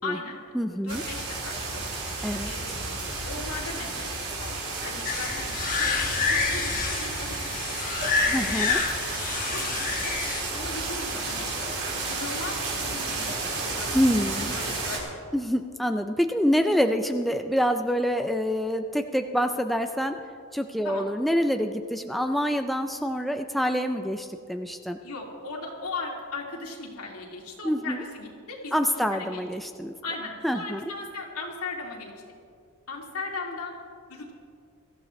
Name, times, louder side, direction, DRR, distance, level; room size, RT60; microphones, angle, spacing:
voice 1, 0.0-1.8 2.4-2.8 3.3-4.1 4.4-8.4 8.7-9.0 9.5-10.2 10.5-11.5 12.1-15.0 20.8-21.1 25.0-29.4 30.0-32.1 32.9-33.7 34.1-34.3, left 3 dB, 80° left, -1 dB, 2.6 m, -38 dB
voice 2, 0.5-1.0 2.2-2.5 8.3-8.8 13.9-14.5 15.3-20.2 20.5-25.0 27.6-28.0 28.7-29.9 30.4-30.8, equal, ahead, 6 dB, 0.4 m, -26 dB
sound 1, 0.9-15.0, right 3 dB, 75° right, 4.6 m, -32 dB
sound 2, 5.0-10.4, left 4 dB, 40° left, 1.7 m, -28 dB
23.0 x 14.0 x 3.2 m, 2.3 s
head